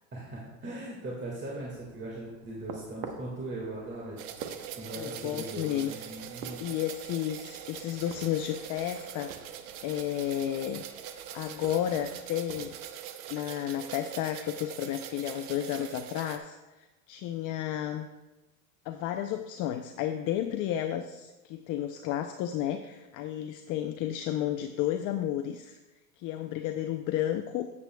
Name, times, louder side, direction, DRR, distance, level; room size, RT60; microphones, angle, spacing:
voice 1, 0.1-4.5 4.8-6.6, right 2 dB, 25° right, -3 dB, 1.7 m, -39 dB
sound 1, 1.6-12.8, right 6 dB, 85° right, 1.1 m, -48 dB
sound 2, 4.2-16.4, right 10 dB, 60° right, 0.8 m, -43 dB
voice 2, 5.0-5.9 6.6-9.3 9.8-10.8 11.3-12.7 13.3-18.1 18.8-25.8 26.2-27.7, left 11 dB, 45° left, 7 dB, 0.5 m, -32 dB
11.0 x 8.4 x 2.2 m, 1.1 s
supercardioid pair, 120°, 46 cm